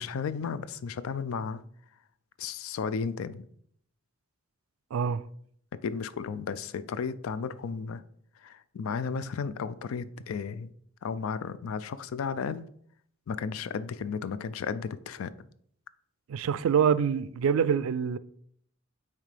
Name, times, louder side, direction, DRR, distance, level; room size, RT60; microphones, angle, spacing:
voice 1, 0.0-1.6 2.4-3.5 5.8-8.0 8.4-10.7 11.0-12.7 13.3-15.3, left 5 dB, 75° left, 0.4 m, -34 dB
voice 2, 4.9-5.2 16.3-18.2, right 7 dB, 75° right, 0.3 m, -25 dB
8.7 x 3.2 x 3.3 m
head